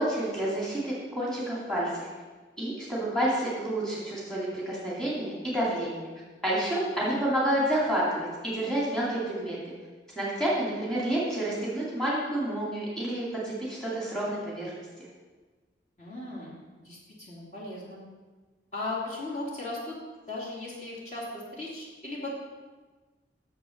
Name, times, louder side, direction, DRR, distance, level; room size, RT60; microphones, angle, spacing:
voice 1, 0.0-2.1 2.6-6.1 6.4-9.7 10.2-14.7, right 1 dB, 5° left, -7 dB, 2.5 m, -29 dB
voice 2, 16.0-18.0 18.7-19.9 20.3-22.4, left 2 dB, 40° left, -6 dB, 2.6 m, -37 dB
9.0 x 7.1 x 6.6 m, 1.3 s
head